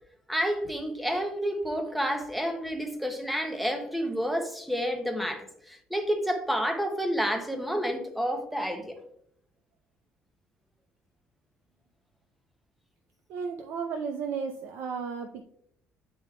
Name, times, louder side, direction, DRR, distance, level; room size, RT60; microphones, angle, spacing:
voice 1, 0.3-9.0, equal, ahead, 6 dB, 0.6 m, -30 dB
voice 2, 13.3-15.4, right 6 dB, 70° right, 4 dB, 0.5 m, -34 dB
9.2 x 4.5 x 2.3 m, 0.70 s
cardioid pair, 170°, 4 cm